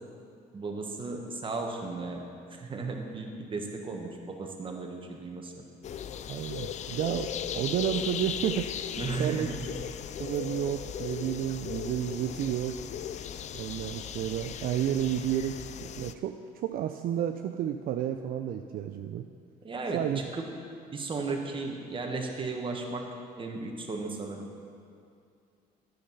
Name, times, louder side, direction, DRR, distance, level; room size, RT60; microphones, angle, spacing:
voice 1, 0.5-2.2 2.5-5.6 9.0-9.7 19.6-20.5 20.9-23.1 23.4-24.4, right 3 dB, 30° right, 2 dB, 1.4 m, -35 dB
sound 1, 5.8-16.1, left 9 dB, 45° left, 0.4 m, -37 dB
voice 2, 6.3-8.8 9.2-9.5 10.2-12.8 13.5-19.3 19.9-20.2, right 10 dB, 60° right, 6 dB, 0.4 m, -31 dB
10.0 x 7.8 x 5.5 m, 2.4 s
cardioid pair, 110°, 17 cm